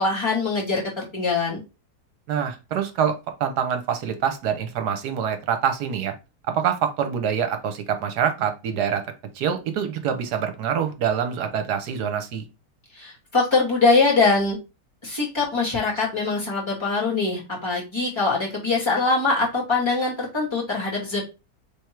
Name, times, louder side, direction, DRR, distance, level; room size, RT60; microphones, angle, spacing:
voice 1, 0.0-1.6 12.9-14.6 15.0-21.2, left 3 dB, 15° left, -4 dB, 2.1 m, -23 dB
voice 2, 2.3-6.1 6.5-9.0 9.3-12.4, right 8 dB, 75° right, 7 dB, 1.4 m, -25 dB
3.5 x 3.4 x 4.4 m, 0.28 s
omnidirectional pair, 1.8 m